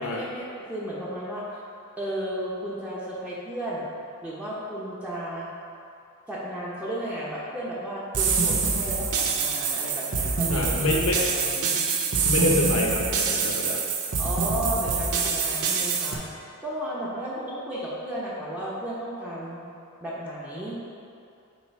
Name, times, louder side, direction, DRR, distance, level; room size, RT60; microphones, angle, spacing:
voice 1, 0.0-1.6 2.0-3.9 4.2-5.5 6.3-10.9 11.1-11.8 14.1-16.3 16.6-19.6 20.0-20.8, right 1 dB, 5° right, -8 dB, 0.8 m, -33 dB
sound 1, 8.1-16.1, right 5 dB, 85° right, 0.7 m, -25 dB
voice 2, 10.5-11.2 12.2-13.9, left 2 dB, 70° left, -1 dB, 0.9 m, -26 dB
8.3 x 3.0 x 4.6 m, 2.5 s
head